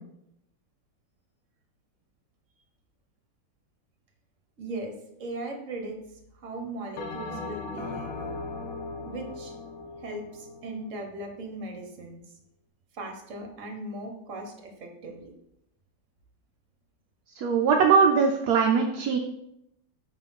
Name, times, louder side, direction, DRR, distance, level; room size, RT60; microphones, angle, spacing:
voice 1, 4.6-4.9 5.2-6.0 6.4-8.1 9.0-9.5 10.0-12.2 12.9-15.3, right 2 dB, 45° right, 3 dB, 1.4 m, -38 dB
Bell, 7.0-11.6, left 3 dB, 90° left, 1.7 m, -38 dB
voice 2, 17.4-19.2, right 6 dB, 65° right, 3 dB, 1.0 m, -21 dB
5.1 x 4.1 x 5.6 m, 0.79 s
omnidirectional pair, 2.0 m